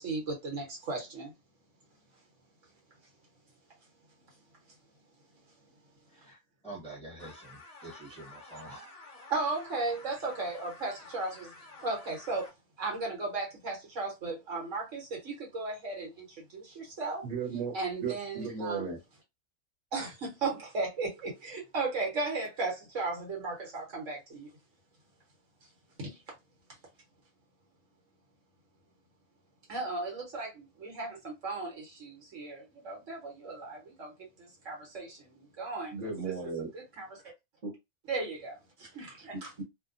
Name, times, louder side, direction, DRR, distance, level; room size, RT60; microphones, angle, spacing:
voice 1, 0.0-1.3 9.3-11.5 11.8-12.5 12.8-17.3 17.7-18.8 19.9-24.5 26.0-26.1 29.7-36.0 36.2-36.3 36.7-37.2 38.1-39.6, right 3 dB, 70° right, 1.4 m, -36 dB
voice 2, 6.1-9.0, right 2 dB, 5° left, 1.1 m, -47 dB
sound 1, 7.2-12.5, left 3 dB, 35° left, 0.7 m, -51 dB
voice 3, 17.2-17.7 18.0-19.0 35.9-36.7 37.6-37.7 39.3-39.6, right 5 dB, 35° right, 1.0 m, -35 dB
2.8 x 2.1 x 2.5 m
omnidirectional pair, 1.4 m